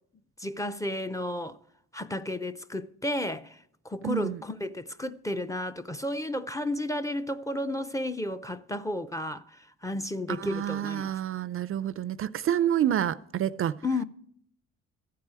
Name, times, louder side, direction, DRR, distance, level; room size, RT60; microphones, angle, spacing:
voice 1, 0.4-1.6 1.9-3.6 3.8-11.1 13.8-14.0, left 1 dB, 10° left, 0.5 m, -32 dB
voice 2, 4.0-4.4 10.3-13.8, right 10 dB, 45° right, 0.4 m, -28 dB
14.0 x 4.7 x 8.5 m
cardioid pair, 90°, 30 cm